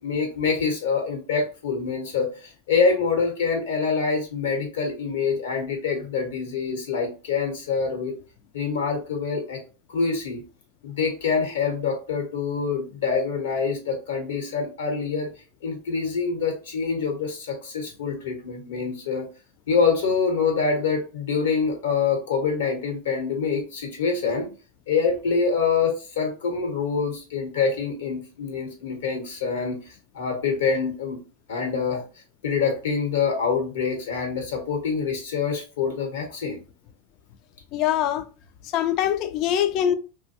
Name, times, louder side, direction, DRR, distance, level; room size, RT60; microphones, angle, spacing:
voice 1, 0.0-8.1 8.5-9.6 9.9-10.4 10.8-15.3 15.6-19.3 19.7-24.5 24.9-29.8 30.1-31.2 31.5-32.0 32.4-36.6, left 5 dB, 80° left, 1.0 m, -25 dB
voice 2, 37.7-38.3 38.7-39.9, left 10 dB, 50° left, 0.3 m, -23 dB
2.5 x 2.1 x 2.7 m
hypercardioid pair, 110°, 0 cm